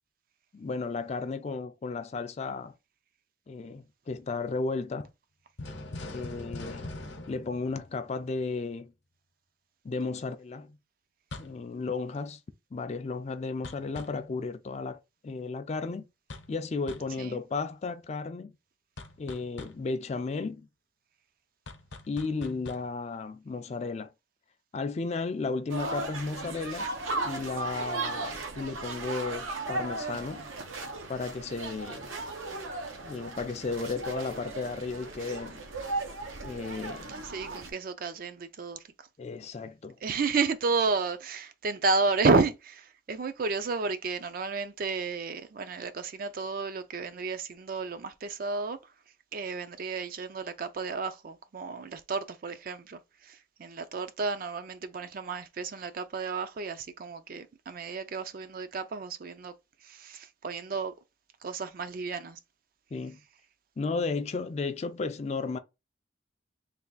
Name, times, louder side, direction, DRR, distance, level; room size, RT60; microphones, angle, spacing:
voice 1, 0.5-2.7 3.5-5.1 6.1-6.9 7.3-8.9 9.8-10.8 11.4-12.4 12.7-16.0 16.5-18.5 19.2-20.7 22.1-24.1 24.7-26.9 27.2-30.5 31.1-32.1 33.0-35.6 36.4-37.1 39.2-40.0 62.9-63.2 63.8-65.6, left 4 dB, 35° left, 0.3 m, -34 dB
sound 1, 5.6-8.4 11.3-11.6 13.6-14.3 16.3-16.6 16.9-17.2 19.0-19.9 21.7-22.9, left 2 dB, 65° left, 0.7 m, -42 dB
sound 2, 25.7-37.7, right 3 dB, 90° right, 0.8 m, -36 dB
voice 2, 37.1-38.8 40.0-48.8 49.3-59.5 59.8-60.9 61.4-62.4, right 4 dB, 50° right, 0.4 m, -31 dB
3.3 x 2.3 x 3.8 m
head